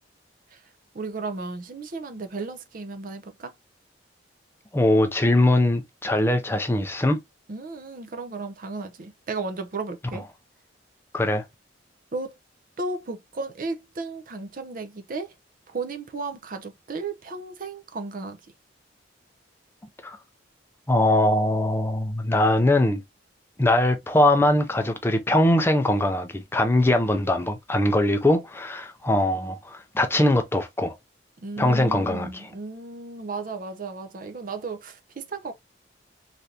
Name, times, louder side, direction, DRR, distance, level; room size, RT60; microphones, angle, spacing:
voice 1, 0.9-3.5 7.5-10.2 12.1-12.4 12.8-15.3 15.7-18.4 31.4-35.5, right 3 dB, 45° right, 0.5 m, -34 dB
voice 2, 4.7-7.2 11.1-11.4 20.0-20.2 20.9-23.0 23.6-30.9 31.6-32.5, left 1 dB, 10° left, 0.4 m, -21 dB
3.2 x 2.5 x 2.7 m
head